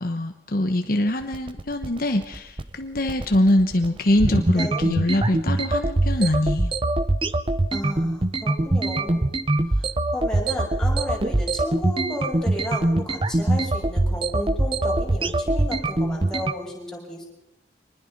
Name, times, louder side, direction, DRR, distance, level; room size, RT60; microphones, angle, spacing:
voice 1, 0.0-6.7, left 1 dB, 50° left, 6 dB, 1.1 m, -23 dB
sound 1, 1.2-16.5, right 2 dB, 30° right, 0.7 m, -23 dB
voice 2, 4.5-4.9 7.7-9.3 9.7-17.3, equal, 5° left, -2 dB, 6.1 m, -33 dB
24.5 x 20.5 x 5.3 m, 0.90 s
head